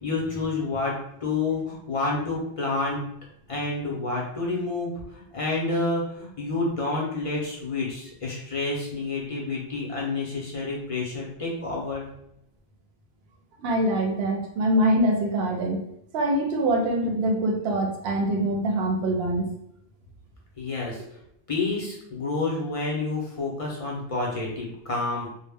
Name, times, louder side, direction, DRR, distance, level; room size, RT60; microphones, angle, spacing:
voice 1, 0.0-0.9 1.2-3.0 3.5-12.0 20.6-21.0 21.5-25.3, left 3 dB, 40° left, -3 dB, 0.5 m, -29 dB
voice 2, 13.6-15.8 16.1-19.5, right 1 dB, 75° right, 3 dB, 0.8 m, -24 dB
2.1 x 2.0 x 3.4 m, 0.76 s
omnidirectional pair, 1.1 m